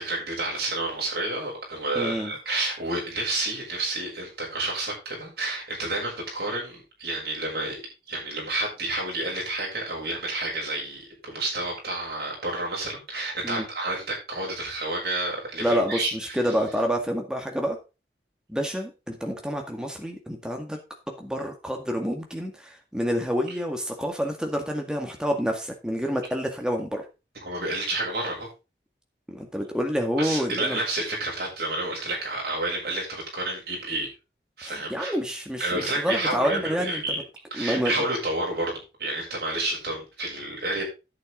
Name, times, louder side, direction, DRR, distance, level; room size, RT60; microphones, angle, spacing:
voice 1, 0.0-7.8 8.1-16.4 27.4-28.5 30.2-34.1 34.6-35.1 35.6-37.2 37.5-40.8, right 2 dB, 60° right, -2 dB, 6.6 m, -30 dB
voice 2, 2.0-2.3 13.4-13.7 15.6-17.8 18.5-20.8 21.2-27.0 29.3-30.8 34.6-37.0 37.6-37.9, equal, 5° right, 3 dB, 1.9 m, -28 dB
10.5 x 8.5 x 3.8 m, 0.29 s
head